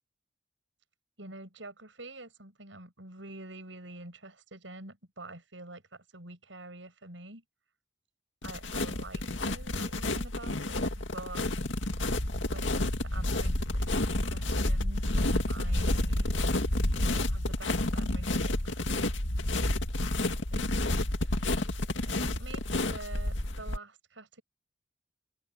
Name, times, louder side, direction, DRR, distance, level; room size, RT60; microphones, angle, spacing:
voice 1, 1.2-7.4 8.4-11.5 12.5-15.2 15.5-16.3 17.1-19.2 20.5-20.8 22.0-24.4, right 2 dB, 90° right, 8.0 m, -47 dB
sound 1, 8.4-23.8, left 1 dB, 90° left, 2.2 m, -30 dB
open air
head